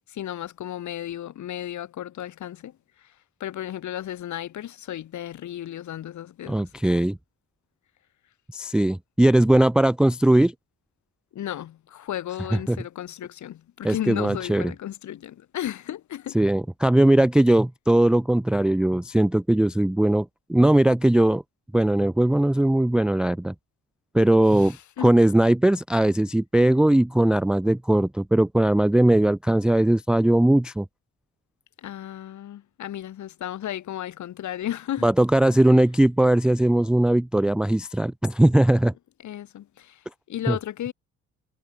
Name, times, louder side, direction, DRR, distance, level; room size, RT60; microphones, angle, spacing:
voice 1, 0.1-3.1 3.4-6.7 11.3-16.4 24.5-25.1 31.8-35.1 39.2-40.9, left 11 dB, 70° left, 3.3 m, -34 dB
voice 2, 6.5-7.2 8.5-10.5 12.7-12.8 13.8-14.7 16.3-21.4 21.7-23.5 24.1-24.8 25.0-30.9 35.0-38.9 40.5-40.6, right 1 dB, 5° right, 0.3 m, -19 dB
cardioid pair, 90°, 30 cm